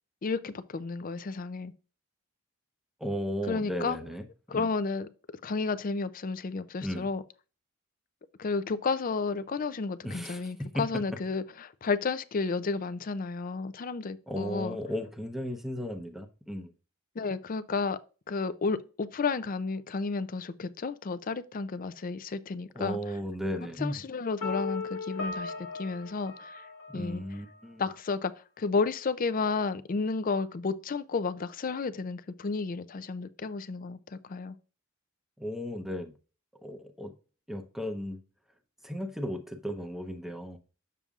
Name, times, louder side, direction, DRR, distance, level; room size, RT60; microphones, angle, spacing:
voice 1, 0.2-1.7 3.5-4.0 4.5-5.1 5.4-7.2 8.4-14.8 17.2-18.0 18.3-23.0 23.8-26.7 26.9-27.2 27.8-34.6, left 4 dB, 40° left, 0.4 m, -32 dB
voice 2, 3.0-4.3 4.5-4.7 6.8-7.1 10.0-10.5 14.3-16.7 22.7-24.0 26.9-27.8 35.4-36.1 36.6-37.1 37.5-38.2 38.8-40.6, equal, ahead, 0.7 m, -35 dB
sound 1, 24.4-27.4, left 4 dB, 75° left, 1.1 m, -37 dB
8.5 x 6.8 x 2.4 m
head